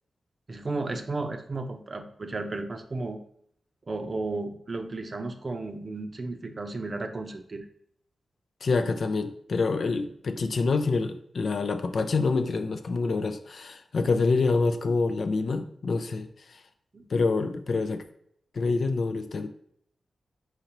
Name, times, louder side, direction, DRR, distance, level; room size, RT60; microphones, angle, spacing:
voice 1, 0.5-3.2 3.9-7.6 16.9-17.1, right 3 dB, 45° right, 6 dB, 0.5 m, -34 dB
voice 2, 8.6-16.6 17.1-18.0 18.5-19.5, left 4 dB, 65° left, 9 dB, 0.4 m, -26 dB
4.0 x 3.9 x 3.0 m, 0.67 s
cardioid pair, 55°, 0 cm